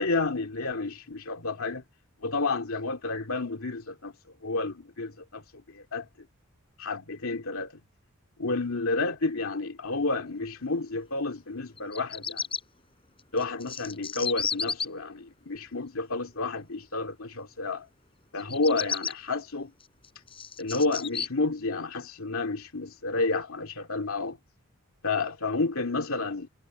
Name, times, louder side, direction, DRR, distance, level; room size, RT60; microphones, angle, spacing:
voice 1, 0.0-1.8 2.2-4.1 4.4-5.4 5.7-6.1 6.8-7.7 8.4-12.4 13.3-17.9 18.3-19.7 20.6-24.4 25.0-26.5, left 3 dB, 70° left, 2.5 m, -30 dB
Bird vocalization bird call bird song, 11.8-12.6 13.4-14.9 18.4-19.1 19.8-21.3, left 6 dB, 25° left, 4.4 m, -32 dB
head